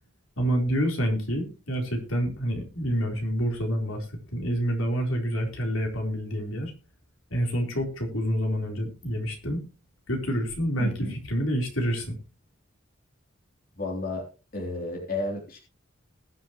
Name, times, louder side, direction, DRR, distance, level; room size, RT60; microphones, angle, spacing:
voice 1, 0.4-4.0 4.3-6.7 7.3-9.6 10.1-10.9 11.3-12.1, equal, 85° left, 1 dB, 4.1 m, -27 dB
voice 2, 10.8-11.2 13.8-14.3 14.5-15.6, left 2 dB, 45° left, 1 dB, 3.4 m, -32 dB
20.5 x 7.6 x 3.1 m, 0.31 s
head